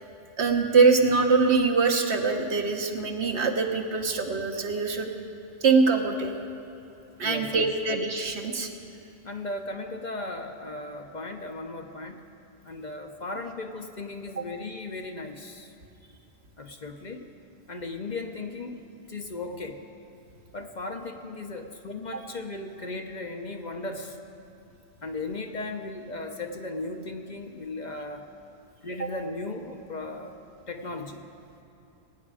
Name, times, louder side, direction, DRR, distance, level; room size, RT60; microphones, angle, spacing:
voice 1, 0.4-5.1 5.6-6.3 7.2-8.7 29.0-29.1, right 4 dB, 70° right, 4 dB, 1.3 m, -23 dB
voice 2, 7.2-7.7 9.2-12.2 12.6-15.7 16.6-17.3 17.7-19.8 20.5-24.2 25.0-28.3 28.8-30.4 30.7-31.3, left 2 dB, 45° left, 4 dB, 0.9 m, -36 dB
21.0 x 9.3 x 4.9 m, 2.9 s
omnidirectional pair, 1.2 m